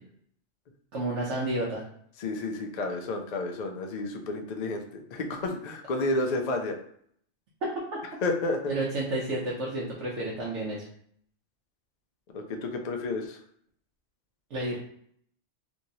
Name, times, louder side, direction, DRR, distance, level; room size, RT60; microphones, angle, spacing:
voice 1, 0.9-1.8 7.6-8.0 8.7-10.9 14.5-14.8, right 1 dB, 80° right, -5 dB, 1.0 m, -31 dB
voice 2, 2.2-6.8 8.2-8.8 12.3-13.4, left 2 dB, 60° left, 3 dB, 0.4 m, -31 dB
3.1 x 2.6 x 2.7 m, 0.64 s
omnidirectional pair, 1.2 m